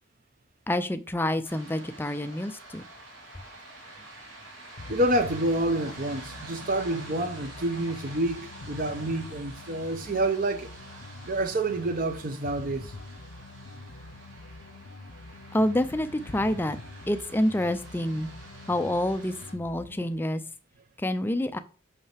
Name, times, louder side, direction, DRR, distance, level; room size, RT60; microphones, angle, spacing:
voice 1, 0.7-2.8 15.5-16.8 17.1-18.3 18.7-20.4 21.0-21.6, left 1 dB, 10° left, 0.3 m, -27 dB
sound 1, 1.4-19.5, right 2 dB, 65° right, 2.7 m, -47 dB
sound 2, 4.8-20.1, left 2 dB, 80° left, 0.6 m, -45 dB
voice 2, 4.9-10.7 11.2-12.9, right 1 dB, 45° right, 0.7 m, -28 dB
5.6 x 5.4 x 3.3 m
head